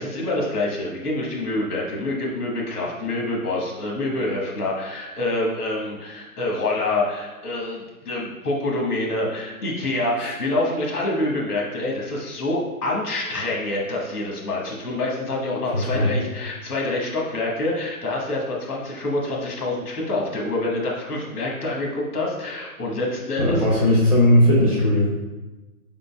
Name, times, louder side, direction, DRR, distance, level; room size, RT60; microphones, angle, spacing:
voice 1, 0.0-23.7, left 2 dB, 85° left, -2 dB, 1.4 m, -26 dB
voice 2, 23.4-25.1, left 1 dB, 15° left, -10 dB, 1.0 m, -17 dB
5.5 x 3.8 x 2.3 m, 1.1 s
hypercardioid pair, 155°, 45 cm